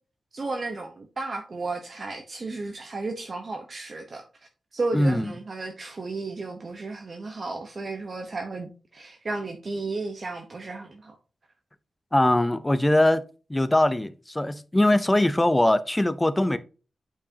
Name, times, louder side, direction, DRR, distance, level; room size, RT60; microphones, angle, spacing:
voice 1, 0.3-4.2 4.7-11.1, right 3 dB, 40° right, 0.9 m, -33 dB
voice 2, 4.9-5.3 12.1-13.2 13.5-16.6, left 1 dB, 10° left, 0.5 m, -21 dB
8.6 x 4.7 x 2.7 m
wide cardioid pair, 130°, 0 cm